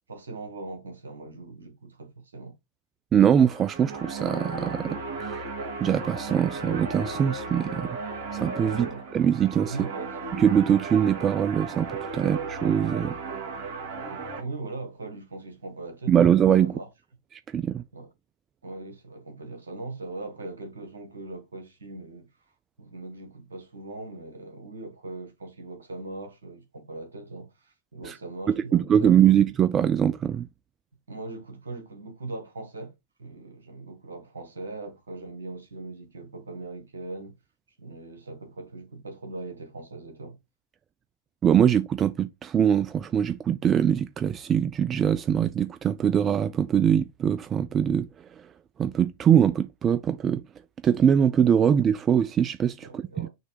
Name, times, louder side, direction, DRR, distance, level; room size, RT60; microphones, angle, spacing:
voice 1, 0.1-2.6 8.7-9.0 9.6-10.1 14.0-16.9 17.9-18.1 18.6-22.3 22.8-29.3 31.1-32.9 33.2-37.4 37.8-40.4 52.8-53.3, right 2 dB, 70° right, 1.9 m, -40 dB
voice 2, 3.1-5.5 5.8-8.0 8.3-8.9 9.1-9.8 10.4-13.2 16.1-16.7 17.5-17.8 28.0-28.1 28.7-30.5 41.4-48.1 48.4-48.5 48.8-50.4 50.8-53.3, right 9 dB, 25° right, 0.4 m, -22 dB
sound 1, 3.3-14.4, right 4 dB, 55° right, 2.2 m, -35 dB
6.4 x 3.2 x 4.7 m
figure-of-eight pair, 90°, 0 cm